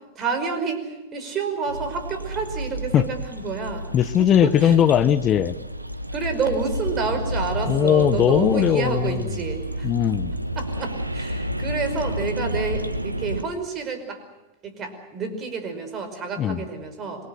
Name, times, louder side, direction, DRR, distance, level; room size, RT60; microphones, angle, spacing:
voice 1, 0.2-3.9 4.2-4.8 6.1-9.9 10.6-14.2 14.6-17.3, right 5 dB, 30° right, 7 dB, 5.4 m, -29 dB
sound 1, 1.7-13.4, right 1 dB, 85° right, 1.2 m, -30 dB
voice 2, 3.9-5.5 7.7-9.3 9.8-10.3 16.4-16.6, left 10 dB, 30° left, 14 dB, 1.1 m, -19 dB
27.0 x 23.5 x 6.5 m, 1.0 s
figure-of-eight pair, 90°, 0 cm